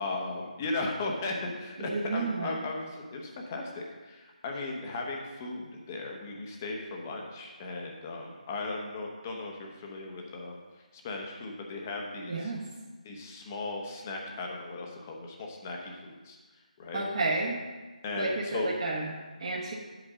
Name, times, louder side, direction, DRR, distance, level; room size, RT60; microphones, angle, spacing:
voice 1, 0.0-10.6 10.9-12.5 13.0-16.4 16.8-17.0 18.0-18.7, left 3 dB, 20° left, 1 dB, 0.9 m, -37 dB
voice 2, 1.8-2.6 12.3-12.6 16.9-17.6 18.2-19.1 19.4-19.7, right 3 dB, 35° right, -6 dB, 1.1 m, -31 dB
8.8 x 8.1 x 3.7 m, 1.3 s
figure-of-eight pair, 170°, 4 cm